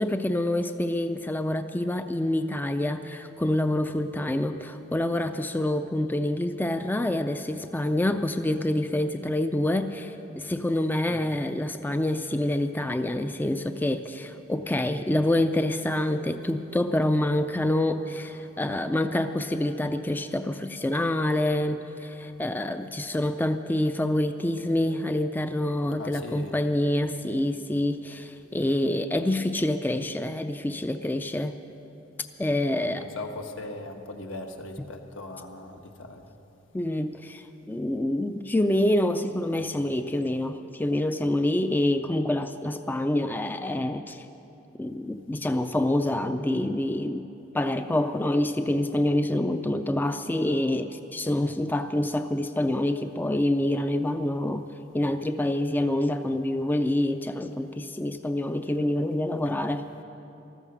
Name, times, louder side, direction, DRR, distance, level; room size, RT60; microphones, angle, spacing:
voice 1, 0.0-31.5 32.4-33.1 36.7-44.3 44.8-47.3 47.5-54.7 54.9-59.8, left 1 dB, 10° left, 9 dB, 0.3 m, -27 dB
voice 2, 26.0-26.6 32.7-36.2 51.4-51.5 59.4-59.5, left 2 dB, 80° left, 4 dB, 1.3 m, -39 dB
14.5 x 14.0 x 6.1 m, 3.0 s
head